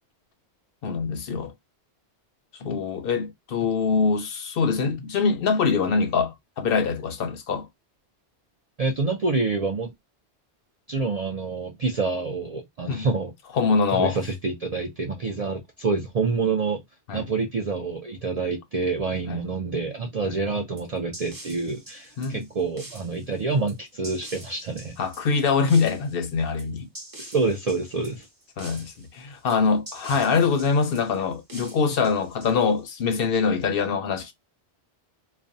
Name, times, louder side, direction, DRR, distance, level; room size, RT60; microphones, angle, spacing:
voice 1, 0.8-1.5 2.6-7.7 12.9-13.1 13.5-14.2 17.1-17.3 19.3-19.4 20.2-20.3 22.2-22.4 25.0-26.9 28.6-34.3, left 5 dB, 65° left, 0.7 m, -24 dB
voice 2, 8.8-9.9 10.9-13.3 13.9-16.8 17.1-25.0 27.2-28.3 30.2-30.3, right 4 dB, 60° right, 0.4 m, -27 dB
sound 1, 20.8-33.0, right 1 dB, 20° right, 0.7 m, -45 dB
2.4 x 2.1 x 2.5 m
omnidirectional pair, 1.1 m